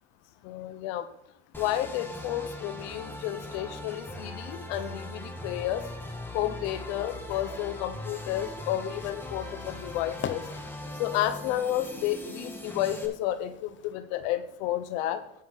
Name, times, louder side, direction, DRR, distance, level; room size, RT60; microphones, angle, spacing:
voice 1, 0.4-1.1 1.6-5.9 6.3-10.4 11.0-15.2, left 12 dB, 90° left, 11 dB, 0.8 m, -31 dB
sound 1, 1.5-13.1, left 1 dB, 5° left, 1.7 m, -40 dB
sound 2, 8.3-13.9, left 8 dB, 35° left, 0.7 m, -44 dB
13.0 x 5.8 x 3.9 m, 0.81 s
supercardioid pair, 90°, 32 cm